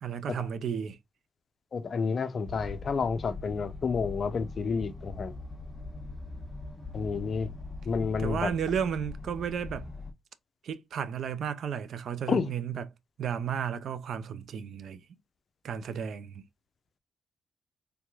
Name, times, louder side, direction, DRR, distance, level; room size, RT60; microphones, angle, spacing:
voice 1, 0.0-1.0 8.2-9.8 10.6-12.8 13.2-15.0 15.6-16.4, right 8 dB, 75° right, 0.4 m, -33 dB
voice 2, 1.7-5.3 6.9-7.5 7.9-8.5 12.3-12.5, left 5 dB, 55° left, 0.5 m, -30 dB
Voice Of Fire, 2.4-10.1, left 3 dB, 15° left, 1.2 m, -41 dB
3.4 x 3.0 x 2.3 m
cardioid pair, 85°, 0 cm